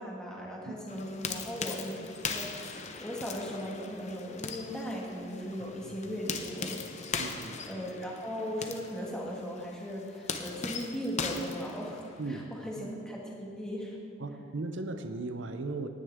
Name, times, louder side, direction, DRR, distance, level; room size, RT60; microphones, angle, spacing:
voice 1, 0.0-6.8 7.7-14.0, equal, 5° left, -3 dB, 1.9 m, -38 dB
sound 1, 0.9-12.3, left 5 dB, 35° left, 0.7 m, -40 dB
voice 2, 5.6-5.9 7.2-7.8 12.2-12.8 14.2-15.9, right 3 dB, 60° right, 8 dB, 0.7 m, -38 dB
19.0 x 9.8 x 3.6 m, 2.3 s
head